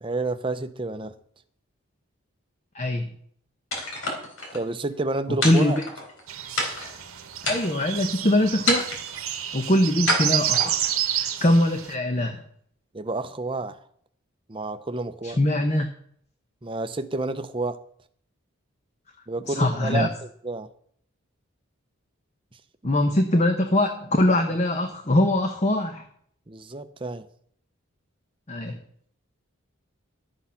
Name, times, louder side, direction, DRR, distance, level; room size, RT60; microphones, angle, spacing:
voice 1, 0.0-1.1 4.5-5.8 12.9-13.8 14.5-15.4 16.6-17.8 19.3-20.1 20.4-20.7 24.4-24.5 26.5-27.3, right 2 dB, 25° right, 9 dB, 0.7 m, -30 dB
voice 2, 2.7-3.1 5.4-5.8 7.5-8.8 9.5-10.8 11.1-12.4 15.2-15.9 19.5-20.1 22.8-26.0 28.5-28.8, left 1 dB, 30° left, 6 dB, 0.9 m, -22 dB
sound 1, 3.7-4.6 5.4-6.2 6.6-7.0 7.4-8.0 8.7-9.2 10.1-11.0, left 2 dB, 75° left, 3.7 m, -28 dB
sound 2, 6.3-11.9, right 11 dB, 90° right, 1.2 m, -29 dB
12.0 x 8.1 x 5.7 m, 0.63 s
head